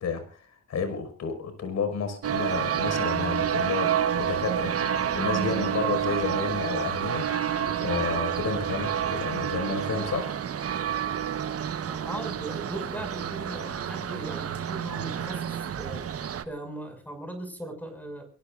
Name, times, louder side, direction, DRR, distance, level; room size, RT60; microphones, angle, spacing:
voice 1, 0.0-10.4, left 5 dB, 60° left, 8 dB, 5.8 m, -31 dB
sound 1, 2.2-16.4, right 9 dB, 50° right, 1.3 m, -29 dB
voice 2, 11.8-16.1 16.4-18.2, right 1 dB, 5° left, 6 dB, 6.6 m, -38 dB
26.5 x 18.0 x 2.6 m, 0.41 s
cardioid pair, 90°, 30 cm